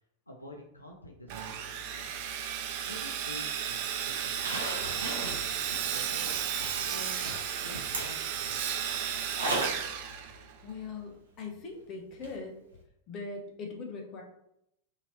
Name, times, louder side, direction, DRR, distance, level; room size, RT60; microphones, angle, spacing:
voice 1, 0.3-2.1 2.8-6.3 6.9-7.3 7.6-9.4, left 1 dB, 85° left, 0 dB, 0.5 m, -49 dB
Sawing, 1.3-10.8, right 9 dB, 50° right, 0.3 m, -34 dB
Zipper (clothing), 4.3-9.9 10.2-10.3 12.2-12.3 12.7-12.8, right 2 dB, 70° right, 0.7 m, -37 dB
voice 2, 10.6-12.6 13.1-14.2, left 4 dB, 35° left, 1 dB, 0.8 m, -40 dB
2.8 x 2.8 x 2.8 m, 0.78 s
figure-of-eight pair, 90°, 0 cm